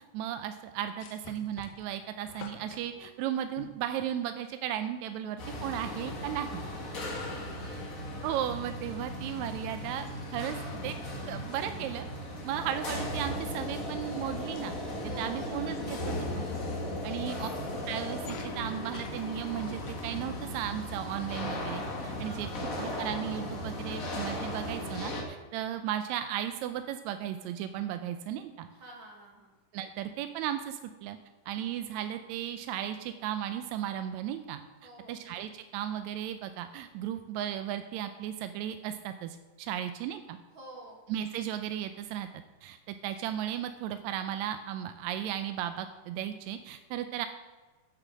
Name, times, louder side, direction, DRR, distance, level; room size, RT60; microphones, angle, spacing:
voice 1, 0.1-6.6 8.2-10.6 10.8-11.0 11.3-12.0 12.4-14.8 15.2-16.5 17.0-17.5 17.8-22.5 22.8-28.7 29.7-31.2 31.5-40.4 41.1-42.3 42.6-47.3, right 11 dB, 80° right, 9 dB, 1.7 m, -35 dB
sound 1, 1.0-4.6 5.7-5.8 6.1-6.2 6.9-7.3 7.6-8.4 8.8-9.0 9.3-14.3 14.5-15.0 15.6-17.5 18.0-20.1, left 6 dB, 75° left, 2.4 m, -53 dB
sound 2, 5.4-25.2, left 1 dB, 35° left, 1.4 m, -37 dB
voice 2, 7.0-8.1 15.0-15.9 17.0-17.5 22.2-22.8 28.7-29.5 34.8-35.3 40.5-41.0, right 2 dB, 45° right, -2 dB, 2.3 m, -51 dB
9.9 x 6.6 x 7.4 m, 1.3 s
omnidirectional pair, 3.7 m